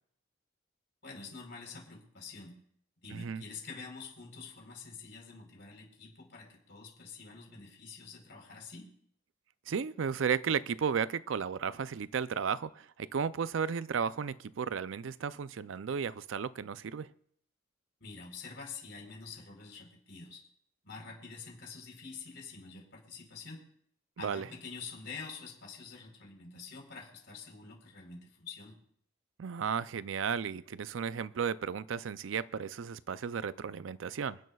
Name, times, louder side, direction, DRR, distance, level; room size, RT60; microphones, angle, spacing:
voice 1, 1.0-2.6 3.0-8.9 18.0-20.4 20.8-23.6 24.2-28.8, left 4 dB, 65° left, 1 dB, 4.0 m, -47 dB
voice 2, 3.1-3.4 9.7-17.1 24.2-24.5 29.4-34.4, right 6 dB, 75° right, 16 dB, 0.4 m, -34 dB
27.0 x 10.5 x 2.4 m, 0.65 s
head